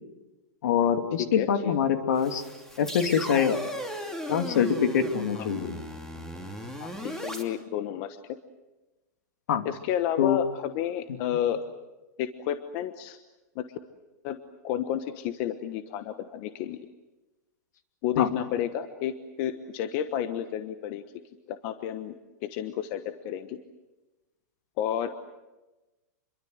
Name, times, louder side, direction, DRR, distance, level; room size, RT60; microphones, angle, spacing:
voice 1, 0.6-2.4 2.8-3.6 4.3-5.7 9.5-9.6 10.2-10.4 18.2-18.3, left 8 dB, 65° left, 7 dB, 2.8 m, -24 dB
voice 2, 1.2-1.7 5.3-5.5 6.8-8.4 9.6-11.6 12.2-13.2 13.5-13.7 14.2-14.4 14.6-16.8 18.0-21.0 21.5-22.1 22.4-23.6 24.8-25.1, left 10 dB, 35° left, 10 dB, 1.2 m, -31 dB
sound 1, 2.2-7.4, equal, 5° left, 2.7 m, -37 dB
27.5 x 23.0 x 8.0 m, 1.1 s
hypercardioid pair, 155°, 10 cm